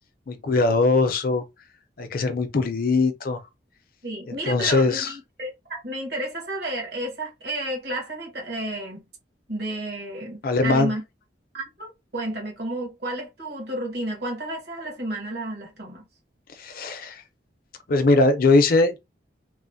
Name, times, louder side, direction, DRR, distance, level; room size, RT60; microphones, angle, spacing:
voice 1, 0.3-1.4 2.0-3.4 4.3-5.1 10.4-10.9 16.6-17.2 17.9-19.0, left 3 dB, 55° left, 0.5 m, -21 dB
voice 2, 4.0-9.0 9.5-11.0 11.5-16.0, right 1 dB, 65° right, 1.3 m, -32 dB
3.1 x 2.1 x 2.6 m
head